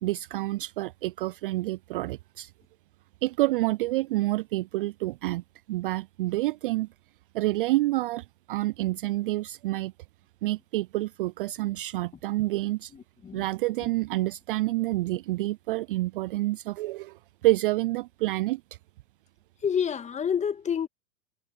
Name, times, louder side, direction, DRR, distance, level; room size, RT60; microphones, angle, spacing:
voice 1, 0.0-2.5 3.2-5.4 5.7-6.9 7.3-9.9 10.4-12.9 13.3-18.6, right 18 dB, 40° right, 0.4 m, -28 dB
voice 2, 12.9-13.5 13.8-13.9 19.6-20.9, left 7 dB, 15° left, 1.8 m, -29 dB
hypercardioid pair, 105°, 41 cm